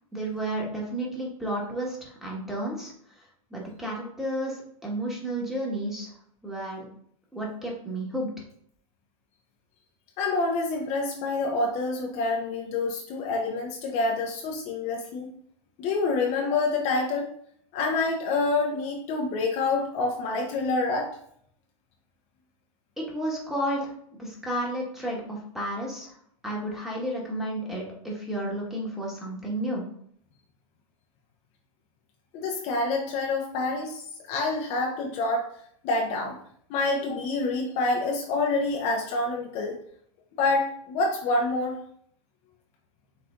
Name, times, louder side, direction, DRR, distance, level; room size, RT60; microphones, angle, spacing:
voice 1, 0.1-2.9 3.5-6.1 6.4-6.8 7.3-8.3 23.0-23.9 24.2-26.1 26.4-29.8, right 1 dB, ahead, -4 dB, 1.4 m, -32 dB
voice 2, 10.2-15.3 15.8-17.3 17.7-21.1 32.3-34.0 34.3-35.4 35.8-36.4 36.7-39.8 40.4-41.8, left 3 dB, 40° left, 0 dB, 0.8 m, -27 dB
5.9 x 3.3 x 2.5 m, 0.64 s
hypercardioid pair, 125°, 18 cm